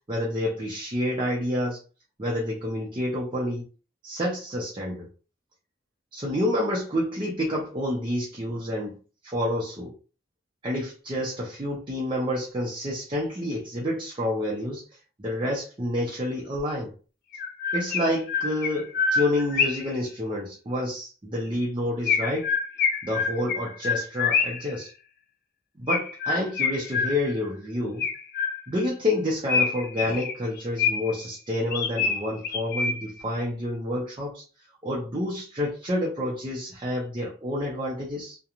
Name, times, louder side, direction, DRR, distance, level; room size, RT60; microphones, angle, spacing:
voice 1, 0.1-1.8 2.2-3.7 4.0-5.1 6.1-9.0 9.2-9.9 10.6-14.8 15.2-16.9 17.7-22.5 23.0-24.9 25.8-28.1 28.7-34.4 34.8-38.4, left 1 dB, 30° right, 0.6 m, -28 dB
Chirp tweet, 16.6-16.7 17.3-20.0 22.1-24.7 25.9-27.5 28.0-28.9 29.5-31.2 31.7-33.2, left 5 dB, 55° left, 0.4 m, -27 dB
2.8 x 2.2 x 2.5 m
head